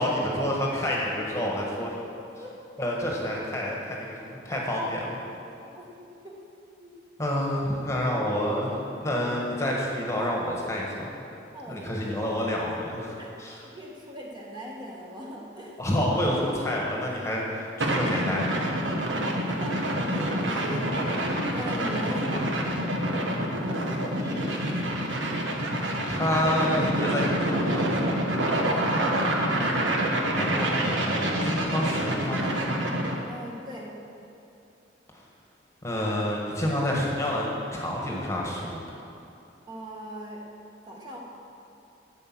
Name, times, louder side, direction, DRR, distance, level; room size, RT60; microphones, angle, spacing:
voice 1, 0.0-1.9 2.8-4.1 4.4-5.2 7.2-10.9 11.7-13.6 15.8-18.7 24.2-25.3 26.1-28.2 30.3-32.5 35.8-37.5 37.7-39.0, left 1 dB, 15° left, -2 dB, 1.5 m, -29 dB
voice 2, 11.5-12.0 13.2-13.3 13.6-15.8 19.1-22.5 28.6-29.0 33.3-34.0 39.7-40.5 40.9-41.2, equal, 25° right, -3 dB, 1.6 m, -39 dB
sound 1, 17.8-33.2, right 1 dB, 80° right, 1.4 m, -27 dB
12.0 x 8.0 x 6.1 m, 2.7 s
head